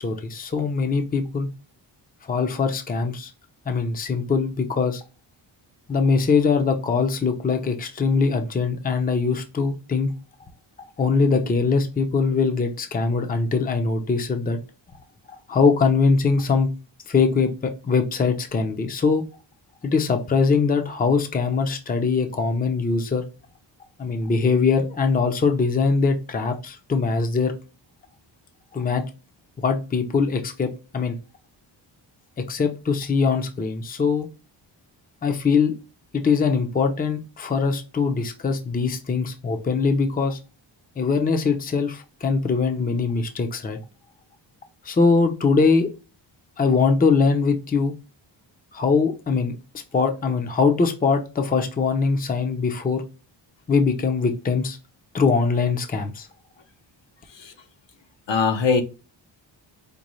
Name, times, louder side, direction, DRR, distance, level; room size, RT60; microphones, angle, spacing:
voice 1, 0.0-1.5 2.2-3.3 3.7-5.0 5.9-10.1 11.0-14.6 15.5-16.7 17.1-19.2 19.8-23.2 24.0-27.5 28.7-29.0 29.6-31.2 32.4-34.3 35.2-35.7 36.1-40.4 41.0-43.8 44.8-45.9 46.6-47.9 48.7-49.5 49.9-53.0 53.7-54.8 55.1-56.3, left 4 dB, 20° left, 0.6 m, -22 dB
voice 2, 58.3-58.8, left 5 dB, 70° left, 0.9 m, -21 dB
5.2 x 2.3 x 3.0 m
cardioid pair, 110°, 46 cm